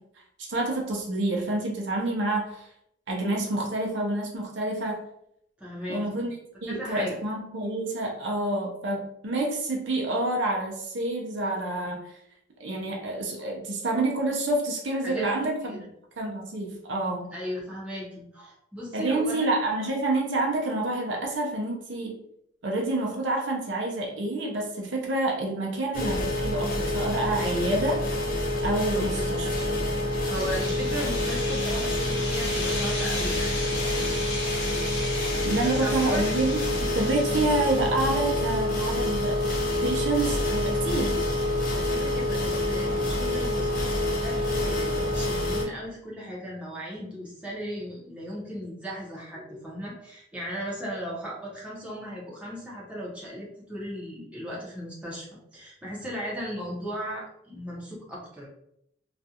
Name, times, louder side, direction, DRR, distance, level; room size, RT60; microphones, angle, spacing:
voice 1, 0.4-2.7 3.1-5.0 5.9-6.4 6.6-12.2 12.6-15.8 16.2-17.3 18.9-22.1 22.6-28.0 28.6-29.5 35.4-39.4 39.8-41.2, right 2 dB, 60° right, 0 dB, 0.5 m, -28 dB
voice 2, 5.6-6.2 6.7-7.1 15.0-15.9 17.3-19.5 27.4-27.7 28.9-29.9 30.3-33.5 35.3-36.3 41.7-58.5, equal, 5° right, -6 dB, 0.6 m, -37 dB
sound 1, 25.9-45.6, left 1 dB, 45° left, 0.5 m, -27 dB
sound 2, 30.1-38.0, left 2 dB, 85° left, 0.8 m, -35 dB
2.4 x 2.3 x 2.7 m, 0.74 s
head